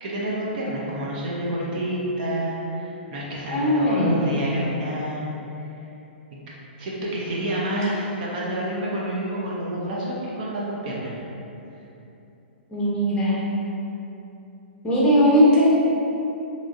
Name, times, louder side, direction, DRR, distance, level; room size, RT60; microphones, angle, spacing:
voice 1, 0.0-5.3 6.8-11.2, right 1 dB, 50° right, -5 dB, 0.7 m, -29 dB
voice 2, 3.5-4.2 12.7-13.4 14.8-15.7, equal, 15° left, -7 dB, 0.6 m, -19 dB
3.1 x 2.7 x 2.5 m, 2.9 s
hypercardioid pair, 135°, 6 cm